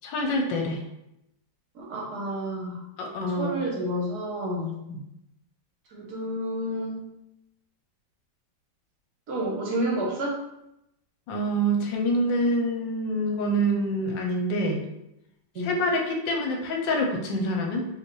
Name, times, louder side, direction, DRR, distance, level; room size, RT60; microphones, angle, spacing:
voice 1, 0.0-0.8 3.0-3.6 4.9-5.0 11.3-14.8 15.6-17.9, equal, 75° left, 1 dB, 1.4 m, -26 dB
voice 2, 1.7-2.8 3.4-4.8 5.9-7.1 9.3-10.4 15.5-15.8, right 1 dB, 60° right, -2 dB, 1.3 m, -30 dB
4.7 x 3.1 x 3.1 m, 0.84 s
omnidirectional pair, 2.0 m